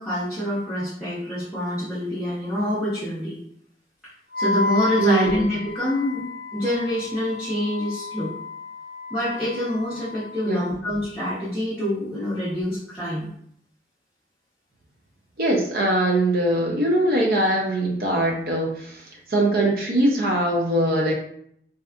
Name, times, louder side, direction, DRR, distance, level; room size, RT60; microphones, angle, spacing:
voice 1, 0.0-3.4 4.4-6.2 6.5-8.3 9.1-13.3, left 1 dB, ahead, -13 dB, 0.7 m, -26 dB
Wind instrument woodwind instrument, 4.3-10.5, left 3 dB, 65° left, 0.3 m, -32 dB
voice 2, 5.0-5.5 10.4-10.8 15.4-21.1, right 1 dB, 55° right, -1 dB, 0.5 m, -22 dB
2.6 x 2.3 x 2.3 m, 0.67 s
head